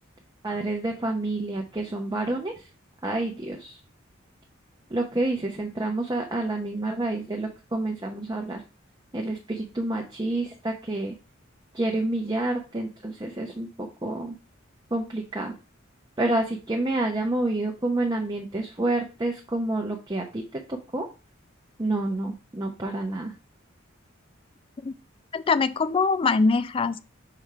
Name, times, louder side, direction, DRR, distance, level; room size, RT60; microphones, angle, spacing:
voice 1, 0.4-2.5 3.0-3.8 4.9-8.6 9.1-11.1 11.7-13.7 14.0-14.4 14.9-15.5 16.2-21.1 21.8-23.3, right 2 dB, 20° right, 0.7 m, -28 dB
voice 2, 25.3-27.0, left 4 dB, 25° left, 0.3 m, -23 dB
5.6 x 3.5 x 4.8 m
head